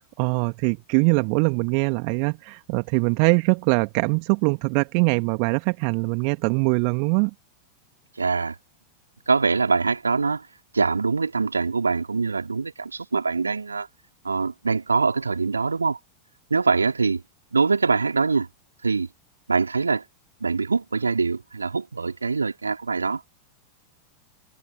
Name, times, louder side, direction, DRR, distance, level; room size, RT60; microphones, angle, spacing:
voice 1, 0.0-7.3, right 40 dB or more, 45° right, 2.1 m, -22 dB
voice 2, 8.2-8.5 9.3-10.5 10.7-13.9 14.2-16.0 16.5-17.2 17.5-18.5 18.8-19.1 19.5-20.0 20.4-23.2, right 4 dB, 75° right, 4.8 m, -23 dB
figure-of-eight pair, 90°, 0 cm